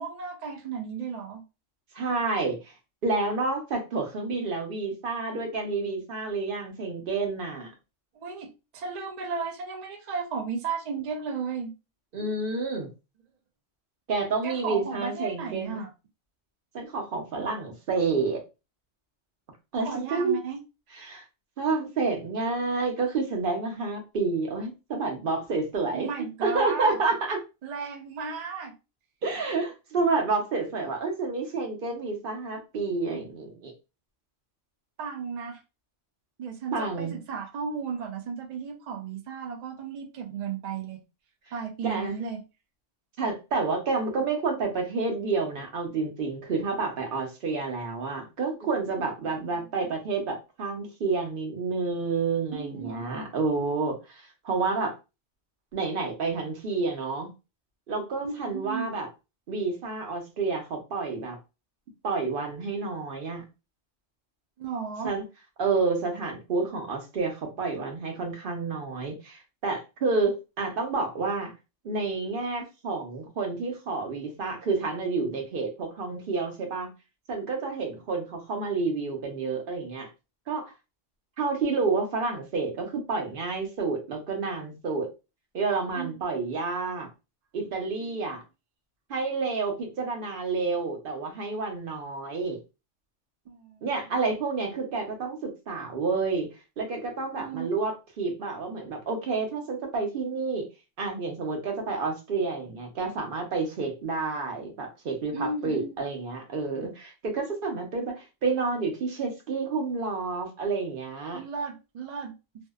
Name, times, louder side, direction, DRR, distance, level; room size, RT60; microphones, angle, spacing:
voice 1, 0.0-1.4 8.1-11.7 14.4-15.9 19.8-20.6 25.9-27.0 27.6-28.7 35.0-35.6 36.4-41.0 41.5-42.4 49.5-49.7 52.5-53.1 58.2-58.9 64.6-65.1 77.7-77.8 85.9-86.1 88.0-88.3 93.5-93.8 97.4-97.7 105.3-105.9 111.3-112.3, right 5 dB, 80° right, 0.3 m, -34 dB
voice 2, 1.9-2.7 3.0-7.7 12.1-12.9 14.1-15.8 16.7-18.4 19.7-20.4 21.0-21.2 21.6-26.1 26.4-27.4 29.2-33.7 36.7-37.1 41.8-42.1 43.2-54.9 55.7-57.3 57.9-59.1 59.5-61.4 62.0-63.4 65.0-65.2 65.6-71.5 71.8-76.9 77.3-80.1 80.5-80.6 81.4-85.1 85.5-87.1 87.5-88.4 89.1-92.6 93.8-96.5 96.8-100.7 101.0-111.4, right 4 dB, 55° right, 0.7 m, -29 dB
2.6 x 2.1 x 2.2 m
omnidirectional pair, 1.3 m